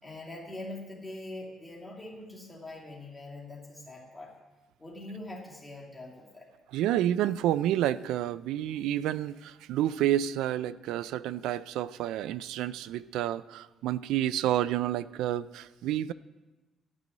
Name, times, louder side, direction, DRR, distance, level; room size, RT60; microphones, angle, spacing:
voice 1, 0.0-4.3 4.8-6.5, left 2 dB, 5° left, -3 dB, 2.3 m, -43 dB
voice 2, 6.7-16.1, right 12 dB, 85° right, 16 dB, 0.4 m, -29 dB
13.0 x 5.4 x 9.1 m, 1.1 s
cardioid pair, 170°, 0 cm